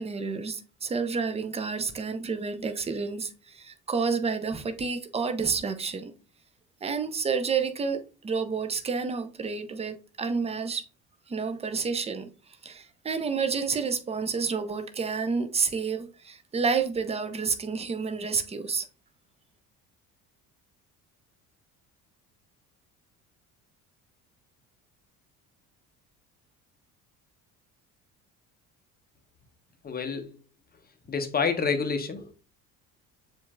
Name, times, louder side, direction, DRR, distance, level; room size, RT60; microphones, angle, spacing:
voice 1, 0.0-6.1 6.8-10.8 11.3-12.3 12.6-18.9, right 5 dB, 15° right, 0.6 m, -29 dB
voice 2, 29.8-30.3 31.1-32.3, left 5 dB, 20° left, 0.8 m, -28 dB
7.1 x 2.6 x 2.2 m
figure-of-eight pair, 55°, 46 cm